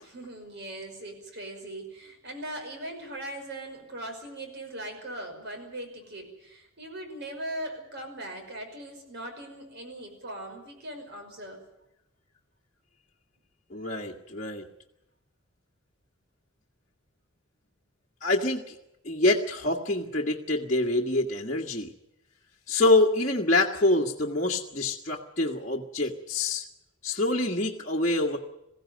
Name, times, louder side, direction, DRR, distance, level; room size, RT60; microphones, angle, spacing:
voice 1, 0.0-11.6, right 1 dB, 55° right, 5 dB, 5.6 m, -40 dB
voice 2, 13.7-14.6 18.2-18.8 19.1-21.9 22.7-26.6 27.0-28.4, left 2 dB, 35° left, -3 dB, 1.7 m, -26 dB
21.5 x 15.5 x 9.3 m, 0.88 s
head